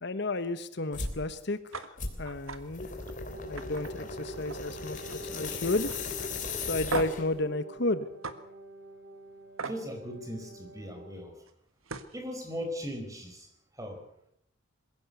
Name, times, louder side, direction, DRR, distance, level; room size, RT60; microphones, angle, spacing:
voice 1, 0.0-2.9 3.5-5.9 6.7-8.1, left 2 dB, 55° left, 12 dB, 1.0 m, -32 dB
sound 1, 0.9-1.2 2.0-7.4, left 4 dB, 40° left, 3.4 m, -37 dB
sound 2, 1.7-1.9 2.3-2.6 3.0-3.2 3.6-4.7 5.0-5.4 5.9-6.0 6.9-7.3 8.2-8.4 9.6-9.8 11.5-11.6 11.9-12.2, right 4 dB, 80° right, 1.7 m, -37 dB
Wind instrument woodwind instrument, 3.2-11.4, right 2 dB, 55° right, 2.9 m, -49 dB
voice 2, 9.7-11.4 12.1-13.5 13.8-14.0, equal, 15° right, 5 dB, 4.7 m, -38 dB
21.5 x 16.5 x 8.1 m, 0.73 s
head